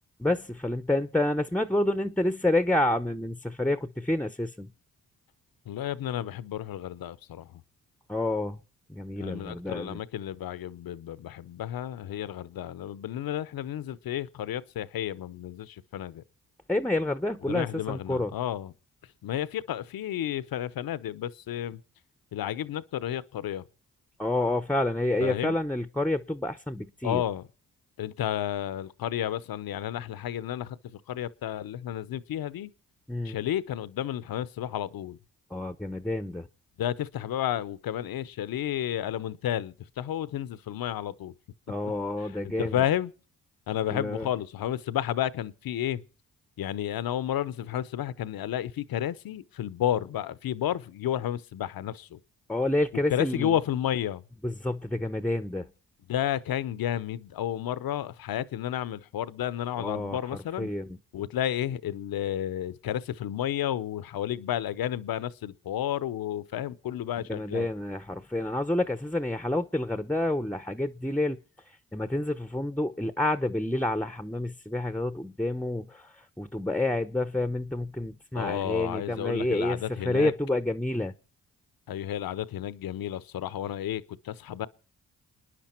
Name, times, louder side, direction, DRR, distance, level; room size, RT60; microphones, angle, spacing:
voice 1, 0.2-4.7 8.1-8.6 8.9-10.0 16.7-18.3 24.2-27.2 33.1-33.4 35.5-36.5 41.7-42.7 43.9-44.3 52.5-53.6 54.4-55.7 59.8-61.0 67.3-71.4 71.7-81.1, left 1 dB, 5° left, 0.7 m, -29 dB
voice 2, 5.7-7.6 9.2-16.2 17.5-18.7 19.2-21.8 22.3-23.6 25.2-25.6 27.0-27.5 28.0-32.7 33.2-35.2 36.8-41.3 42.4-43.1 43.7-46.0 46.6-52.2 53.1-54.2 56.1-60.7 61.1-67.7 78.4-80.3 81.9-84.7, left 11 dB, 70° left, 0.8 m, -32 dB
29.0 x 10.0 x 4.4 m
supercardioid pair, 55°, 36 cm